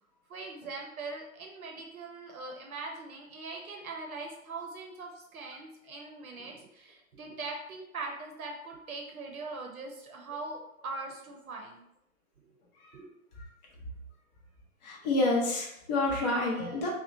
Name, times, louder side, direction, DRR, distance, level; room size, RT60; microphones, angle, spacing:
voice 1, 0.3-11.8 12.9-13.1 16.5-16.9, right 3 dB, 75° right, 1 dB, 0.7 m, -41 dB
voice 2, 14.8-16.9, left 2 dB, 35° left, -2 dB, 0.5 m, -28 dB
2.8 x 2.1 x 2.5 m, 0.78 s
figure-of-eight pair, 120°, 43 cm